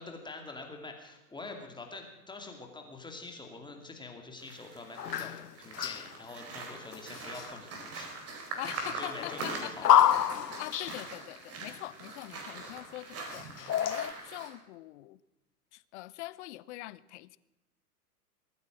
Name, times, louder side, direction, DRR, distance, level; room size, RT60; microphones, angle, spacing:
voice 1, 0.0-5.3 5.6-8.1 9.0-9.9, left 3 dB, 10° left, 3 dB, 2.4 m, -45 dB
sound 1, 4.4-14.5, right 3 dB, 30° right, 4.3 m, -42 dB
sound 2, 5.0-6.2 6.9-7.5 8.8-11.0 12.5-12.7 13.3-14.1, left 10 dB, 85° left, 0.7 m, -28 dB
voice 2, 8.6-9.9 10.6-15.2 15.7-17.4, left 17 dB, 45° left, 19 dB, 0.7 m, -43 dB
23.0 x 9.5 x 6.1 m, 1.0 s
hypercardioid pair, 105°, 47 cm